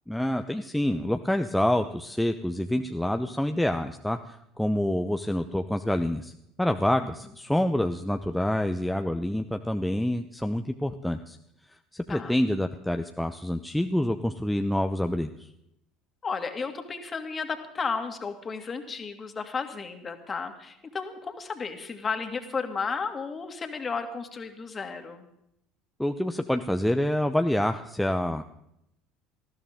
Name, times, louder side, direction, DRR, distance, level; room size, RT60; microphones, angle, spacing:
voice 1, 0.1-6.3 6.6-11.4 11.9-15.5 26.0-28.4, left 1 dB, 5° left, 6 dB, 0.8 m, -27 dB
voice 2, 16.2-25.2, left 5 dB, 30° left, 6 dB, 2.3 m, -33 dB
19.5 x 14.5 x 3.7 m, 0.79 s
hypercardioid pair, 65°, 0 cm